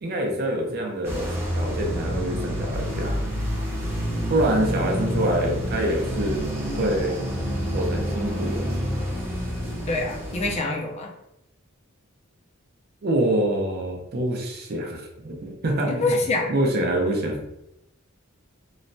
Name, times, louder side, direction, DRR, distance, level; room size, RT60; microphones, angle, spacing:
voice 1, 0.0-3.2 4.3-6.5 6.8-7.2 7.7-8.7 13.0-16.1 16.5-17.4, right 1 dB, 50° right, 2 dB, 0.5 m, -26 dB
sound 1, 1.0-10.6, equal, 10° right, 0.7 m, -28 dB
voice 2, 9.9-11.1 15.8-16.5, left 2 dB, 35° left, 2 dB, 0.4 m, -25 dB
3.0 x 2.1 x 2.6 m, 0.83 s
head